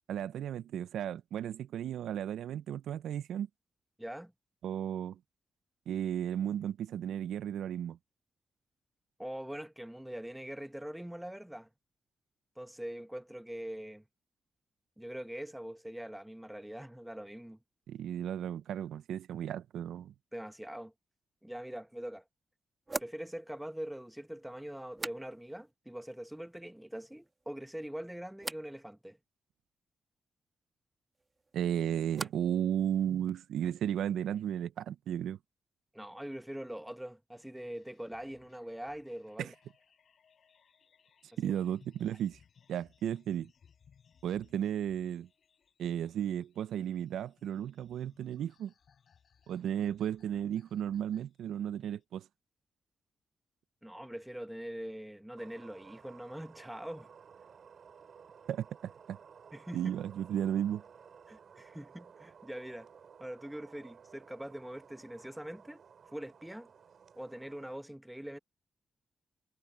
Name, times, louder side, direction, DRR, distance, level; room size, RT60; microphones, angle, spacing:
voice 1, 0.1-3.5 4.6-5.2 5.9-8.0 17.9-20.1 31.5-35.4 39.4-39.5 41.4-42.4 42.7-43.5 44.2-45.3 45.8-48.7 49.5-52.3 58.5-59.2 59.7-60.8, right 10 dB, 90° right, 0.5 m, -34 dB
voice 2, 4.0-4.3 9.2-11.7 12.6-14.0 15.0-17.6 20.3-20.9 21.4-22.2 23.0-29.2 35.9-39.5 41.4-41.5 53.8-57.1 59.5-59.8 61.3-62.9 63.2-65.8 66.1-66.7 67.2-68.4, right 1 dB, 5° right, 1.3 m, -43 dB
sound 1, 21.6-21.7 22.9-25.7 26.0-26.6 26.9-27.5 28.4-28.7 31.1-32.6 32.9-33.5, right 3 dB, 30° right, 1.3 m, -45 dB
sound 2, 37.3-52.0, left 7 dB, 65° left, 6.3 m, -66 dB
sound 3, 55.4-67.8, right 6 dB, 65° right, 5.8 m, -56 dB
cardioid pair, 65°, 0 cm